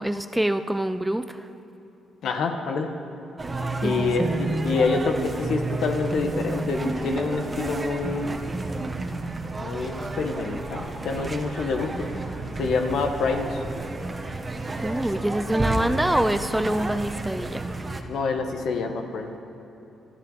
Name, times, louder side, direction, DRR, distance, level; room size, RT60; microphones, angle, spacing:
voice 1, 0.0-1.5 3.7-4.3 14.8-17.6, right 1 dB, 5° right, 10 dB, 0.5 m, -25 dB
voice 2, 2.2-2.9 3.8-4.3 4.6-8.3 9.6-12.1 12.6-13.6 18.1-19.3, left 4 dB, 70° left, 5 dB, 1.4 m, -26 dB
sound 1, 3.4-18.0, right 2 dB, 25° right, 1.3 m, -30 dB
25.5 x 12.5 x 4.2 m, 3.0 s
cardioid pair, 90°, 0 cm